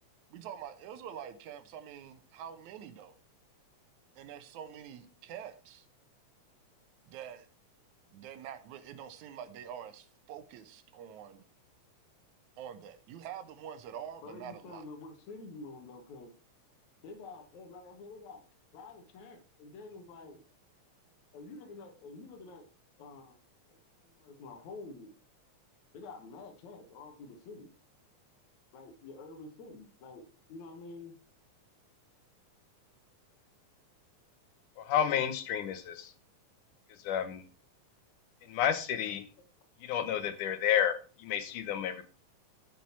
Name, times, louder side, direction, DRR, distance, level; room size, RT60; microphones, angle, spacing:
voice 1, 0.3-3.2 4.2-5.9 7.1-7.5 8.1-11.5 12.6-14.8, right 9 dB, 75° right, 2.3 m, -46 dB
voice 2, 14.2-16.3 17.0-18.4 18.7-20.4 21.3-22.7 23.0-23.4 23.7-23.8 24.0-25.1 25.9-27.7 28.7-31.1 34.9-35.0, left 3 dB, 70° left, 2.8 m, -48 dB
voice 3, 34.8-36.1 36.9-37.4 38.4-39.2 39.8-42.0, left 9 dB, 85° left, 2.6 m, -31 dB
11.5 x 6.0 x 4.6 m
omnidirectional pair, 3.5 m